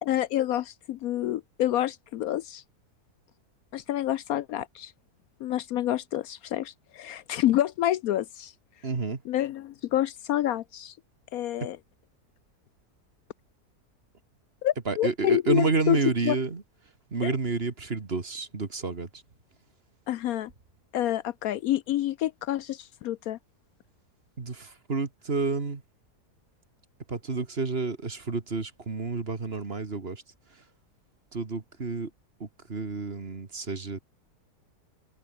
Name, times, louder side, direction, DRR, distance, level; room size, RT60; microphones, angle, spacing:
voice 1, 0.0-2.6 3.7-4.9 5.4-8.5 9.3-10.9 11.3-11.8 14.6-16.0 16.2-16.4 17.2-17.4 20.1-20.5 20.9-23.4, left 13 dB, 70° left, 1.0 m, -28 dB
voice 2, 8.8-9.2 11.6-11.7 14.9-16.6 17.1-19.2 24.4-25.8 27.1-30.2 31.3-32.1 32.4-34.0, right 4 dB, 40° right, 2.0 m, -30 dB
open air
omnidirectional pair, 1.7 m